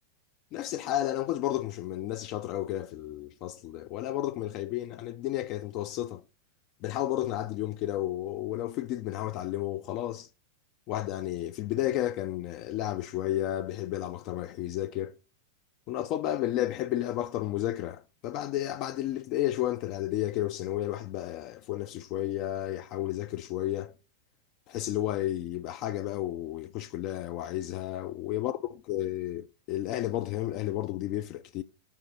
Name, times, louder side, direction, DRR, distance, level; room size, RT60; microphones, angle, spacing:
voice 1, 0.5-6.2 6.8-10.3 10.9-15.1 15.9-23.9 24.7-28.6 28.9-31.6, left 13 dB, 45° left, 0.3 m, -32 dB
7.4 x 4.0 x 4.5 m
hypercardioid pair, 100°, 0 cm